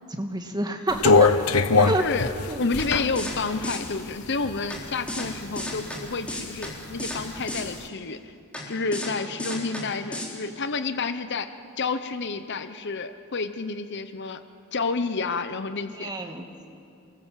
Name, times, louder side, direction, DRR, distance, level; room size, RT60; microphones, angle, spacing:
voice 1, 0.2-1.3 1.8-2.0 2.5-2.7 15.9-16.4, right 1 dB, 20° right, 4 dB, 1.8 m, -28 dB
sound 1, 0.9-4.9 5.3-6.3 6.7-7.7, left 4 dB, 85° left, 1.0 m, -22 dB
voice 2, 2.0-2.3 2.6-8.3 8.7-11.5 11.8-14.4 14.7-16.1, left 4 dB, 55° left, 10 dB, 0.9 m, -30 dB
sound 2, 2.8-2.9 3.2-3.3 3.6-3.8 4.7-4.8 5.1-5.3 5.6-6.0 6.3-6.7 7.0-7.2 7.5-7.6 8.5-8.6 8.9-9.1 9.4-9.8 10.1-10.3, left 1 dB, 5° left, 4.1 m, -32 dB
28.0 x 20.5 x 7.5 m, 2.5 s
head